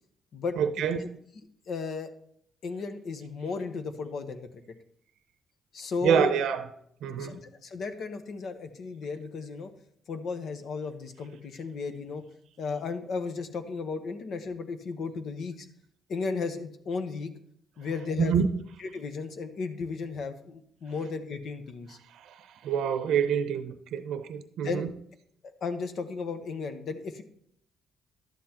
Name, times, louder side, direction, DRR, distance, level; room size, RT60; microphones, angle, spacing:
voice 1, 0.6-1.1 6.0-6.7 7.0-7.4 18.2-18.5 22.3-22.4 22.6-24.9, right 7 dB, 80° right, 9 dB, 0.6 m, -27 dB
voice 2, 1.7-2.1 2.6-4.6 5.7-6.3 7.2-9.7 10.1-12.2 12.6-15.7 16.1-17.3 17.8-18.3 18.8-22.0 24.6-24.9 25.4-27.2, left 4 dB, 60° left, 8 dB, 1.0 m, -34 dB
11.5 x 7.6 x 2.9 m, 0.68 s
cardioid pair, 90°, 0 cm